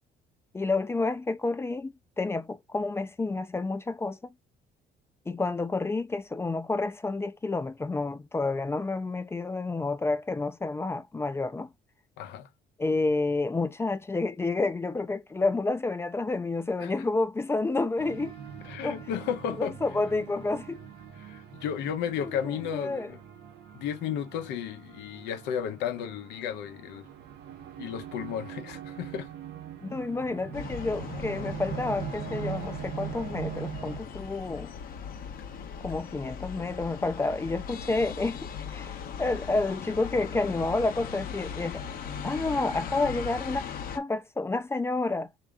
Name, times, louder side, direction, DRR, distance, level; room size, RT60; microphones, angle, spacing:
voice 1, 0.5-4.3 5.3-11.7 12.8-18.4 18.8-19.0 19.6-20.8 22.7-23.1 29.8-34.7 35.8-41.8 42.2-43.6 43.9-45.3, left 3 dB, 15° left, 0.4 m, -29 dB
voice 2, 12.2-12.5 16.8-16.9 18.6-19.8 21.1-23.2 23.7-27.1 27.8-29.3, left 8 dB, 85° left, 0.8 m, -33 dB
sound 1, 18.0-34.0, right 9 dB, 80° right, 0.9 m, -42 dB
sound 2, 30.5-44.0, left 7 dB, 60° left, 0.9 m, -39 dB
3.5 x 2.8 x 3.5 m
cardioid pair, 110°, 17 cm